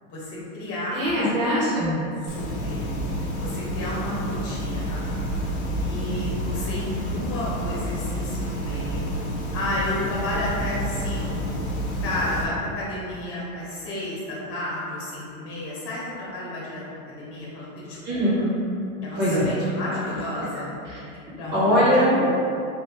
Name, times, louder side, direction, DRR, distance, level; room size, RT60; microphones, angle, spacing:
voice 1, 0.1-1.0 2.2-2.9 3.4-5.1 5.8-9.1 9.5-11.6 12.0-18.5 19.0-20.7 21.4-21.8 22.1-22.4, left 1 dB, 35° left, -7 dB, 1.1 m, -32 dB
voice 2, 0.9-2.0 18.0-18.4 19.2-19.5 20.9-21.0 21.5-22.2, equal, 30° right, -9 dB, 0.9 m, -21 dB
sound 1, 2.3-12.4, equal, 80° left, 0.9 m, -29 dB
3.2 x 2.6 x 3.0 m, 2.6 s
supercardioid pair, 135°, 43 cm